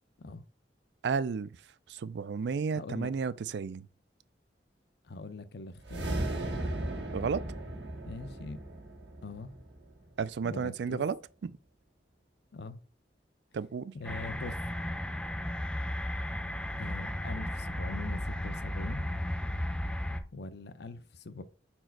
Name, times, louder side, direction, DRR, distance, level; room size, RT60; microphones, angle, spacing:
voice 1, 1.0-1.6 1.9-3.9 7.1-7.4 10.2-11.6 13.5-13.9, right 5 dB, 70° right, 0.4 m, -32 dB
voice 2, 2.7-3.1 5.0-6.6 8.1-8.6 9.2-9.5 10.4-11.0 12.5-12.8 13.9-14.6 16.8-19.0 20.3-21.4, left 3 dB, 65° left, 0.6 m, -42 dB
sound 1, 5.8-10.2, right 1 dB, 85° right, 1.5 m, -36 dB
sound 2, 14.0-20.2, left 1 dB, 5° left, 0.5 m, -34 dB
5.0 x 4.4 x 4.5 m
head